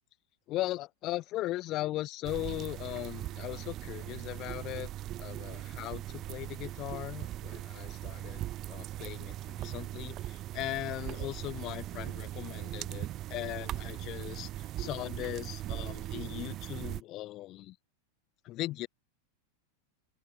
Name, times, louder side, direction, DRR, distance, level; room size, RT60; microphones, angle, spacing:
voice 1, 0.5-4.9 5.2-8.4 8.7-17.8 18.4-18.9, left 16 dB, 35° left, 0.6 m, -38 dB
sound 1, 2.2-17.0, right 14 dB, 35° right, 0.3 m, -40 dB
open air
figure-of-eight pair, 90°, 0 cm